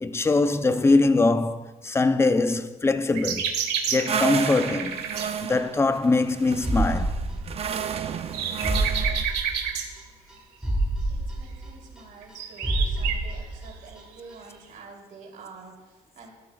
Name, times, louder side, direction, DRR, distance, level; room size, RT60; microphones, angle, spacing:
voice 1, 0.0-3.5 3.9-5.1 5.4-7.2, left 3 dB, 15° left, 0.6 m, -22 dB
sound 1, 3.1-5.3 8.0-9.9 12.2-13.2 14.5-14.6, right 8 dB, 85° right, 1.4 m, -29 dB
sound 2, 4.1-9.2, right 8 dB, 35° right, 0.6 m, -31 dB
sound 3, 6.6-8.0 8.3-8.4 8.6-10.0 10.3-10.4 10.6-12.3 12.6-14.0 14.3-14.4, right 1 dB, 5° right, 1.3 m, -28 dB
voice 2, 11.1-16.3, right 4 dB, 55° right, 3.2 m, -47 dB
13.5 x 12.5 x 2.4 m
cardioid pair, 110°, 17 cm